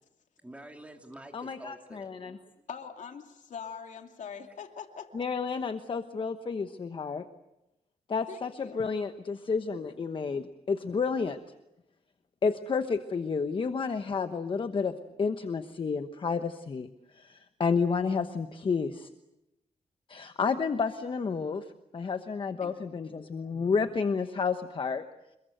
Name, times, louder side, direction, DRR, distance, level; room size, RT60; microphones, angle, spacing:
voice 1, 0.4-2.7, right 1 dB, 10° right, 3 dB, 3.3 m, -48 dB
voice 2, 1.3-2.3 5.1-7.2 8.1-11.4 12.4-19.1 20.1-21.7 21.9-25.0, left 5 dB, 40° left, 8 dB, 1.1 m, -31 dB
voice 3, 2.7-5.2 8.3-8.8 22.6-22.8, left 7 dB, 70° left, 5 dB, 2.6 m, -43 dB
26.5 x 21.5 x 7.9 m, 0.91 s
wide cardioid pair, 120°, 13 cm